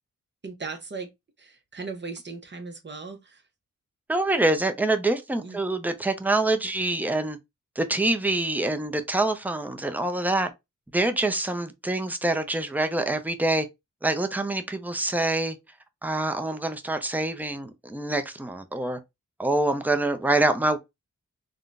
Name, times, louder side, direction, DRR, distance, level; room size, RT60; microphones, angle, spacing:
voice 1, 0.4-1.1 1.4-3.4 5.4-5.6, right 4 dB, 35° right, 0.8 m, -37 dB
voice 2, 4.1-7.4 7.8-10.5 10.9-13.7 14.0-15.6 16.0-19.0 19.4-20.8, right 2 dB, 5° right, 0.6 m, -25 dB
3.6 x 2.2 x 2.4 m
cardioid pair, 60°, 31 cm